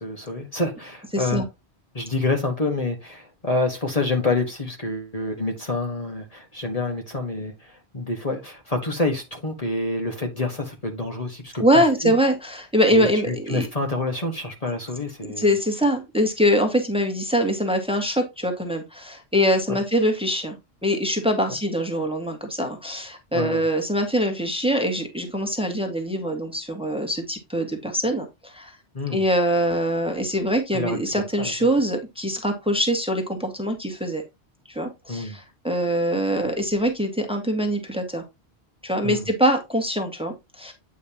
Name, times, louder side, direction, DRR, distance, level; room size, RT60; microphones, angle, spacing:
voice 1, 0.0-1.4 1.9-12.1 12.9-15.5 19.7-19.8 23.3-23.6 28.9-29.2 30.7-31.5 35.1-35.4 39.0-39.3, left 2 dB, 35° left, 1.5 m, -27 dB
voice 2, 1.1-1.4 11.6-13.7 15.4-20.6 20.8-28.7 29.1-34.2 34.7-38.2 38.8-40.7, equal, 5° right, 1.6 m, -23 dB
9.2 x 5.2 x 2.9 m
omnidirectional pair, 1.1 m